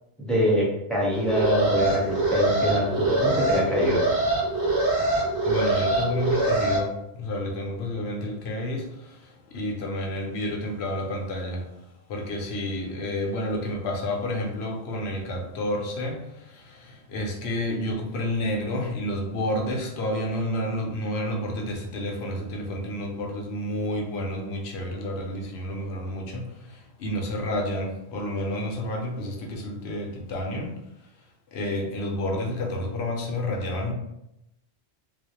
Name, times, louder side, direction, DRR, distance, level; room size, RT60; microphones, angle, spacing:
voice 1, 0.2-4.0, left 1 dB, ahead, -6 dB, 0.5 m, -24 dB
Alarm, 1.1-6.8, right 2 dB, 65° right, 1.0 m, -24 dB
voice 2, 5.4-30.8 31.5-33.9, left 1 dB, 75° left, 1 dB, 0.8 m, -30 dB
2.4 x 2.0 x 2.7 m, 0.85 s
omnidirectional pair, 1.1 m